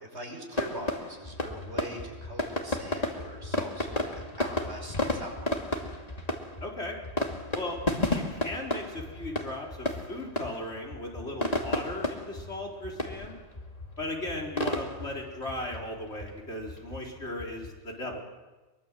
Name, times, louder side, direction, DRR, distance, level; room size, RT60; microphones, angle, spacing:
voice 1, 0.0-5.5, right 1 dB, 80° right, 2 dB, 6.0 m, -42 dB
sound 1, 0.5-18.1, left 1 dB, 35° left, 2.6 m, -34 dB
voice 2, 6.6-7.0 7.5-7.8 8.1-13.4 14.0-18.3, left 1 dB, 80° left, -1 dB, 4.5 m, -37 dB
24.0 x 23.0 x 7.6 m, 1.2 s
omnidirectional pair, 1.1 m